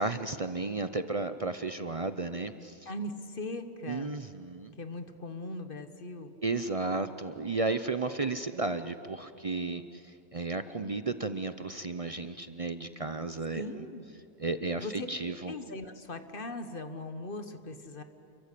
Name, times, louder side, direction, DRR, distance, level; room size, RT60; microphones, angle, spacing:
voice 1, 0.0-2.9 3.9-4.8 6.4-13.6 14.4-15.5, right 3 dB, 35° right, 10 dB, 0.8 m, -33 dB
voice 2, 2.8-4.1 4.8-6.3 13.5-14.0 14.8-15.1 15.4-18.0, left 2 dB, 55° left, 9 dB, 1.5 m, -39 dB
29.5 x 23.0 x 8.4 m, 2.5 s
omnidirectional pair, 1.1 m